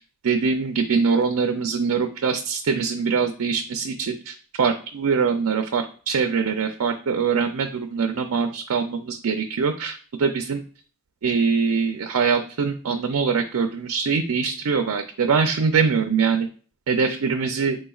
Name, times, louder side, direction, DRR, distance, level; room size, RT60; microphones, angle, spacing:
voice 1, 0.2-10.6 11.2-16.5 16.9-17.8, right 5 dB, 75° right, 5 dB, 0.4 m, -23 dB
5.0 x 4.0 x 2.3 m, 0.40 s
head